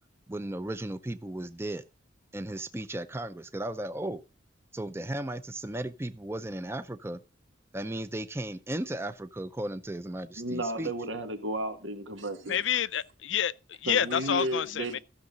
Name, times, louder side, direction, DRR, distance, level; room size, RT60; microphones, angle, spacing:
voice 1, 0.3-1.8 2.3-4.2 4.7-7.2 7.7-10.9, right 1 dB, 15° right, 0.5 m, -35 dB
voice 2, 10.4-12.6 13.9-15.0, right 1 dB, 85° right, 2.1 m, -33 dB
voice 3, 12.4-15.0, left 8 dB, 75° left, 0.5 m, -29 dB
14.5 x 6.6 x 3.8 m
head